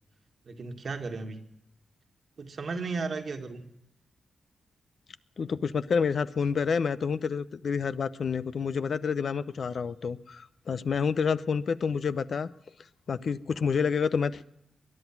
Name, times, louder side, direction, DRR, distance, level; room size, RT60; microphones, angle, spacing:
voice 1, 0.4-1.4 2.4-3.6, right 4 dB, 60° right, 4 dB, 1.8 m, -34 dB
voice 2, 5.4-12.5 13.1-14.4, left 6 dB, 65° left, 14 dB, 0.7 m, -28 dB
21.0 x 11.0 x 5.9 m, 0.88 s
cardioid pair, 60°, 0 cm